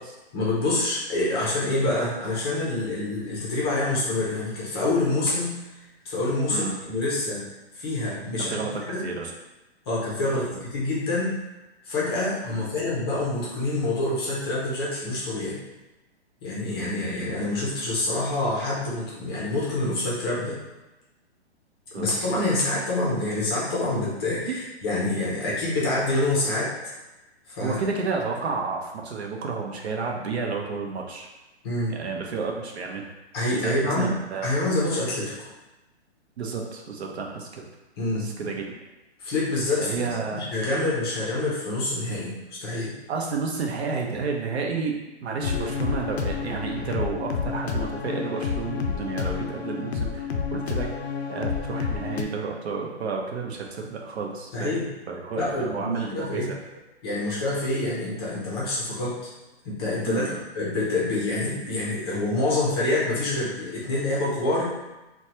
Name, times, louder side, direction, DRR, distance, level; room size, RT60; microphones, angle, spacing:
voice 1, 0.3-7.5 7.7-9.1 9.9-10.4 10.7-11.4 11.8-15.6 16.4-20.6 21.9-26.7 27.5-27.8 31.6-32.0 33.3-34.1 34.4-35.5 38.0-38.5 39.2-40.1 40.3-42.9 53.8-53.9 54.5-54.9 55.4-56.5 57.0-59.3 59.6-60.2 60.6-64.7, left 2 dB, 25° left, -6 dB, 0.5 m, -27 dB
voice 2, 6.5-6.9 8.4-9.3 10.2-10.6 12.5-12.7 21.9-22.1 24.5-24.6 27.6-31.3 31.9-33.1 33.5-34.5 36.4-37.7 38.1-38.7 39.8-40.5 43.1-50.9 51.3-56.6 60.0-60.4, right 4 dB, 75° right, 1 dB, 0.7 m, -31 dB
sound 1, 45.4-52.2, left 6 dB, 75° left, 0.5 m, -29 dB
3.1 x 2.2 x 2.8 m, 1.0 s
hypercardioid pair, 155°, 33 cm